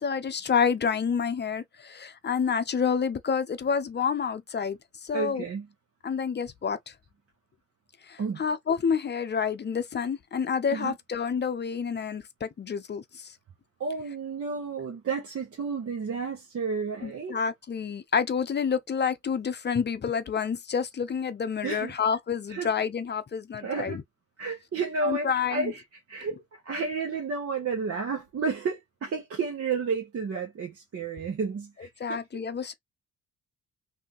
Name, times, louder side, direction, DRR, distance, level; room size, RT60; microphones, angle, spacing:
voice 1, 0.0-5.4 6.0-6.8 8.1-13.3 17.0-24.0 25.0-25.7 32.0-32.7, left 6 dB, 35° left, 0.6 m, -28 dB
voice 2, 5.1-5.7 8.2-8.4 10.7-10.9 13.8-17.4 21.6-21.9 22.5-22.7 23.6-24.0 24.4-26.4 26.6-32.2, right 4 dB, 50° right, 1.2 m, -31 dB
3.3 x 2.8 x 2.9 m
cardioid pair, 90°, 30 cm